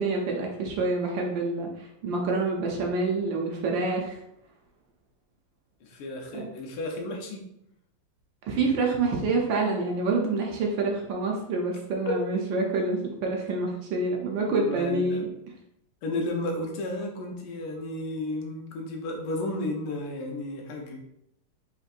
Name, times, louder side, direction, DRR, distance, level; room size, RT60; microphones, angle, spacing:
voice 1, 0.0-4.2 6.3-6.5 8.4-15.3, right 3 dB, 70° right, 0 dB, 1.2 m, -27 dB
voice 2, 5.8-7.4 14.5-15.3 16.0-21.0, left 1 dB, 85° left, 1 dB, 1.7 m, -33 dB
4.3 x 3.5 x 2.5 m, 0.79 s
omnidirectional pair, 2.4 m